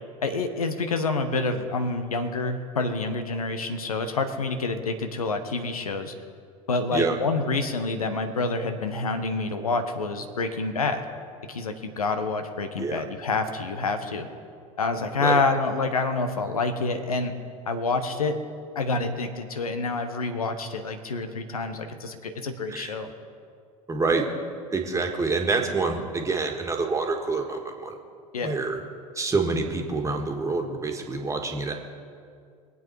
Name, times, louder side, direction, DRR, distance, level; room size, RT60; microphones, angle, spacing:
voice 1, 0.2-6.1 6.7-11.0 11.5-14.3 14.8-17.3 17.7-18.4 18.7-23.1 28.3-28.6, left 3 dB, 75° left, 7 dB, 1.1 m, -27 dB
voice 2, 23.9-24.3 24.7-27.9 28.4-28.8 29.2-31.7, right 3 dB, 15° right, 3 dB, 1.9 m, -27 dB
22.5 x 8.3 x 4.6 m, 2.2 s
figure-of-eight pair, 75°, 19 cm